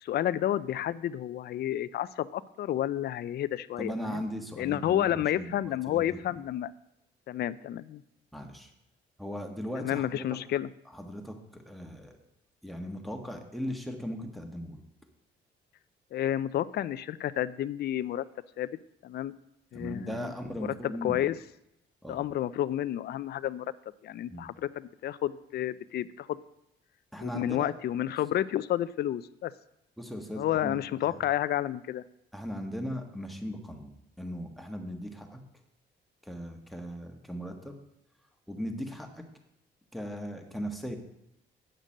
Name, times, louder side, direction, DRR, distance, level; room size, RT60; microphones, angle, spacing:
voice 1, 0.0-4.2 4.6-6.7 7.3-8.0 9.8-10.7 16.1-18.2 18.6-18.7 19.0-19.3 19.7-20.3 20.6-21.4 22.1-23.7 24.0-26.4 27.2-29.5 30.4-32.0, left 12 dB, 55° left, 14 dB, 0.4 m, -30 dB
voice 2, 3.8-6.4 8.3-8.7 9.2-10.2 10.9-12.1 12.6-14.8 19.7-21.2 22.0-22.2 24.3-24.5 27.1-27.7 30.0-31.2 32.3-35.4 36.2-37.8 38.5-39.3 39.9-41.0, equal, ahead, 4 dB, 1.5 m, -38 dB
8.8 x 6.6 x 6.4 m, 0.82 s
cardioid pair, 90°, 20 cm